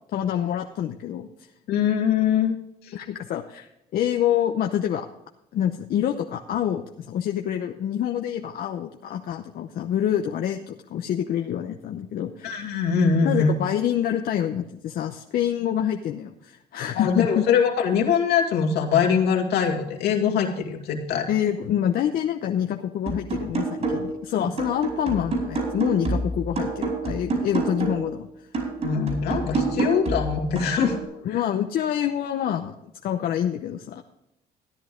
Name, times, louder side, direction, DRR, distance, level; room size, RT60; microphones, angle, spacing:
voice 1, 0.1-1.3 2.9-3.7 3.9-5.1 5.5-12.8 13.2-17.4 21.3-28.3 29.7-29.9 31.2-32.7 33.0-34.0, left 10 dB, 60° left, 4 dB, 0.8 m, -26 dB
voice 2, 1.7-2.6 2.8-2.9 12.4-13.5 16.9-21.3 28.8-31.0 31.3-31.4, left 7 dB, 75° left, 0 dB, 2.4 m, -22 dB
sound 1, 23.1-24.2 24.6-28.1 28.5-31.1, right 3 dB, 45° right, 5.0 m, -28 dB
14.0 x 10.5 x 3.8 m, 0.83 s
cardioid pair, 110°, 17 cm